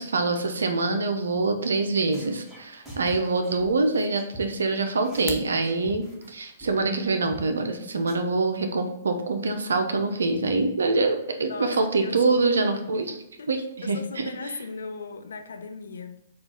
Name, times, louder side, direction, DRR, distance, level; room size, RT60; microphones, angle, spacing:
voice 1, 0.0-14.6, right 3 dB, 80° right, 0.6 m, -25 dB
sound 1, 2.1-4.7 5.0-6.3 6.6-6.7 7.0-7.1 7.3-7.4 7.7-7.8 8.1-8.2, right 1 dB, 10° right, 1.6 m, -44 dB
sound 2, 5.0-5.6, left 4 dB, 25° left, 0.6 m, -37 dB
voice 2, 11.4-12.2 13.4-13.5 13.8-16.2, left 4 dB, 75° left, 0.5 m, -37 dB
4.3 x 2.5 x 4.2 m
hypercardioid pair, 120°, 0 cm